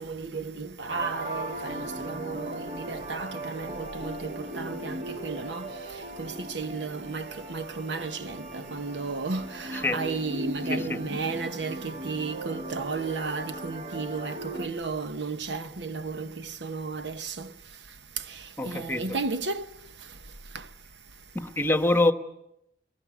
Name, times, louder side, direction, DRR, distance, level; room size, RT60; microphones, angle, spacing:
voice 1, 0.0-5.7 6.2-17.5 18.7-19.6, right 4 dB, 75° right, 1.1 m, -34 dB
sound 1, 0.9-14.7, right 1 dB, 45° right, 2.4 m, -37 dB
voice 2, 18.6-19.2 21.3-22.1, left 2 dB, 15° left, 1.3 m, -25 dB
23.0 x 21.0 x 9.4 m
head